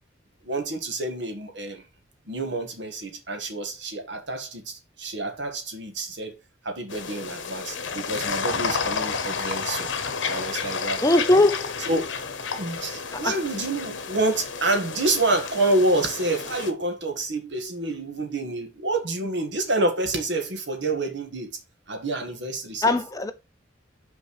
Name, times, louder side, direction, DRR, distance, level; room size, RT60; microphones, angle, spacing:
voice 1, 0.4-1.8 2.3-6.4 6.6-9.9 10.2-11.0 11.8-12.1 12.6-21.5 21.9-23.0, right 2 dB, 70° right, 1.6 m, -28 dB
sound 1, 6.9-16.7, left 5 dB, 80° left, 1.0 m, -31 dB
voice 2, 11.0-11.7 13.2-13.3 22.8-23.3, left 2 dB, 15° left, 0.5 m, -20 dB
5.8 x 4.5 x 4.6 m
head